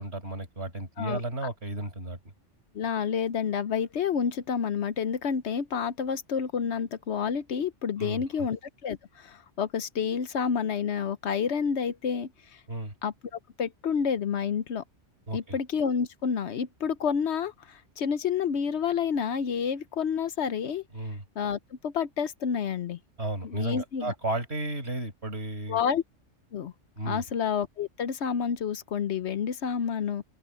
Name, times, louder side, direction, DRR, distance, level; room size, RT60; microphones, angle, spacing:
voice 1, 0.0-2.2 8.0-8.5 12.7-12.9 15.3-15.6 20.9-21.2 23.2-25.8 27.0-27.2, right 2 dB, 60° right, 5.7 m, -33 dB
voice 2, 2.7-12.6 13.0-14.8 15.3-20.8 21.4-23.0 23.4-24.1 25.7-26.0 26.5-26.7 27.0-30.2, left 7 dB, 65° left, 1.0 m, -29 dB
open air
omnidirectional pair, 1.2 m